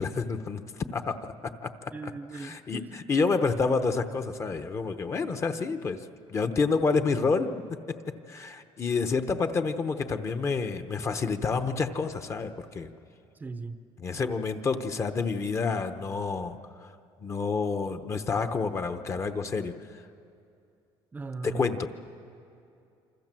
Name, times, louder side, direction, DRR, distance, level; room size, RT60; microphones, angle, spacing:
voice 1, 0.0-6.0 6.3-7.6 7.9-8.0 8.3-12.9 14.0-16.9 17.2-19.7 21.4-21.9, left 4 dB, 25° left, 8 dB, 0.9 m, -29 dB
voice 2, 1.9-3.0 13.4-13.8 21.1-21.7, right 4 dB, 15° right, 10 dB, 0.7 m, -38 dB
27.5 x 25.5 x 7.6 m, 2.6 s
cardioid pair, 165°, 10 cm